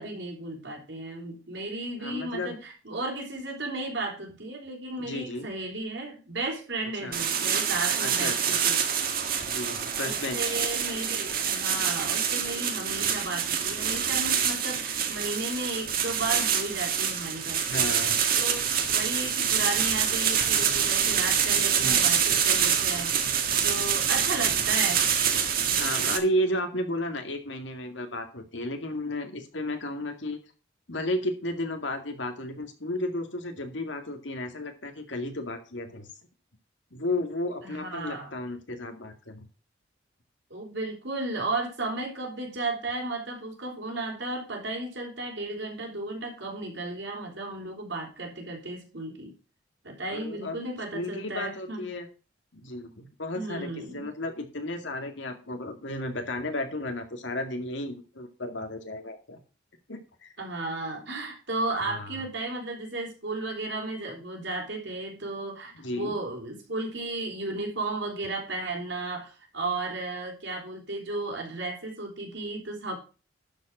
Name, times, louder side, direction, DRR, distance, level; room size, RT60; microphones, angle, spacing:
voice 1, 0.0-8.8 9.4-9.7 10.0-17.9 18.4-23.2 23.6-25.1 37.6-38.4 40.5-49.4 49.8-51.9 53.3-54.1 60.4-73.0, right 2 dB, 75° right, 1 dB, 4.0 m, -34 dB
voice 2, 2.0-2.5 5.0-5.5 7.0-7.2 8.0-8.6 9.5-10.6 17.7-18.2 21.8-22.0 25.7-30.4 30.9-36.1 36.9-39.5 50.1-50.6 50.9-52.1 52.5-59.4 59.9-60.3 61.8-62.3 65.7-66.1, left 1 dB, 80° left, 5 dB, 2.2 m, -33 dB
sound 1, 7.1-26.2, right 8 dB, 50° right, 1.6 m, -26 dB
12.0 x 5.2 x 6.1 m, 0.34 s
head